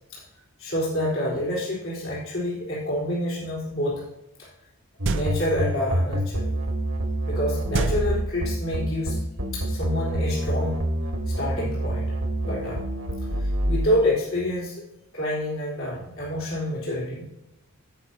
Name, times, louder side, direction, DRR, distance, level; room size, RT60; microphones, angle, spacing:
voice 1, 0.6-4.0 5.1-6.4 7.3-9.2 9.5-10.9 11.3-12.1 12.4-12.8 13.7-14.8 15.1-17.3, left 1 dB, 65° left, -7 dB, 3.7 m, -27 dB
sound 1, 5.0-5.7 7.7-8.8, right 3 dB, 55° right, 0.5 m, -28 dB
sound 2, 5.0-13.9, right 1 dB, 80° right, 1.9 m, -27 dB
17.5 x 5.9 x 2.7 m, 0.89 s
head